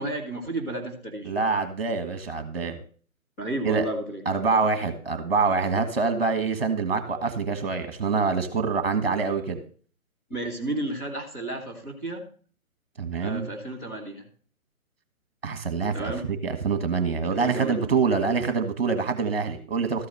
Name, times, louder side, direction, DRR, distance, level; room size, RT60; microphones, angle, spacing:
voice 1, 0.0-1.4 3.4-4.2 10.3-12.2 13.2-14.2 15.9-16.3 17.4-17.8, right 1 dB, 10° left, -6 dB, 1.2 m, -32 dB
voice 2, 1.2-2.8 3.6-3.9 4.2-9.6 13.0-13.5 15.4-16.1 16.4-20.1, right 4 dB, 40° right, 7 dB, 1.7 m, -25 dB
13.5 x 4.8 x 7.7 m, 0.43 s
figure-of-eight pair, 145°, 43 cm